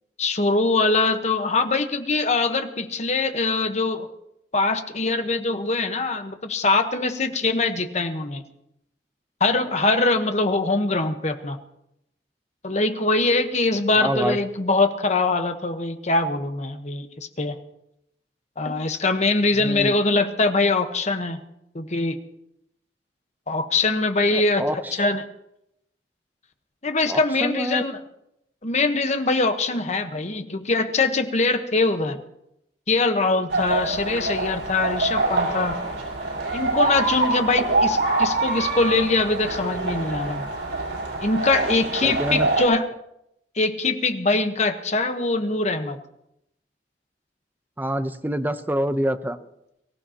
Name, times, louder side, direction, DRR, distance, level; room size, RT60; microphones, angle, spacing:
voice 1, 0.2-4.1 4.5-8.4 9.4-11.6 12.6-17.1 17.4-17.6 18.6-21.4 21.7-22.2 23.5-25.2 26.8-28.0 28.6-32.2 32.9-35.8 36.5-40.4 41.2-42.9 43.5-46.0, left 3 dB, 40° left, 8 dB, 1.1 m, -23 dB
voice 2, 14.0-14.4 19.6-19.9 24.3-24.9 27.1-27.8 42.0-42.5 47.8-49.4, equal, 10° right, 10 dB, 0.7 m, -26 dB
sound 1, 33.5-42.6, right 2 dB, 90° right, 5.8 m, -25 dB
23.5 x 15.5 x 2.9 m, 0.81 s
head